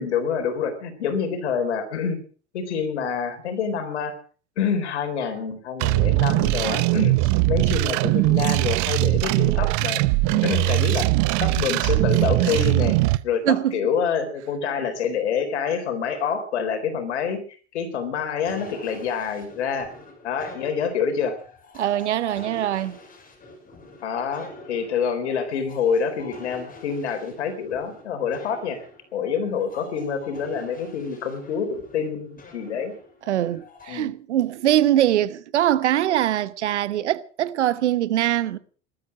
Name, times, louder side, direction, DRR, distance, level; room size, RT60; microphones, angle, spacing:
voice 1, 0.0-2.2 2.5-4.1 4.6-10.0 10.3-11.1 11.4-13.0 13.2-17.4 17.7-19.9 20.2-21.3 24.0-28.8 29.1-32.9 33.9-34.1, left 6 dB, 80° left, 4.2 m, -27 dB
sound 1, 5.8-13.2, right 21 dB, 55° right, 0.8 m, -21 dB
voice 2, 13.5-13.8 21.8-23.0 33.3-38.6, right 12 dB, 80° right, 1.1 m, -22 dB
sound 2, 18.4-34.0, left 3 dB, 25° left, 6.5 m, -45 dB
20.0 x 13.0 x 4.9 m
hypercardioid pair, 80°, 34 cm